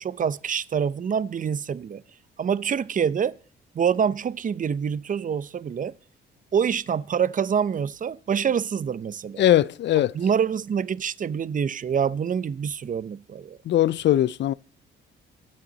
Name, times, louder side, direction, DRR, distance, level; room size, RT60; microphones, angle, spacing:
voice 1, 0.0-2.0 2.4-3.4 3.7-5.9 6.5-9.4 10.1-13.6, right 7 dB, 40° right, 0.8 m, -26 dB
voice 2, 9.4-10.2 13.7-14.5, left 12 dB, 65° left, 0.6 m, -20 dB
24.0 x 9.2 x 4.1 m
cardioid pair, 90°, 20 cm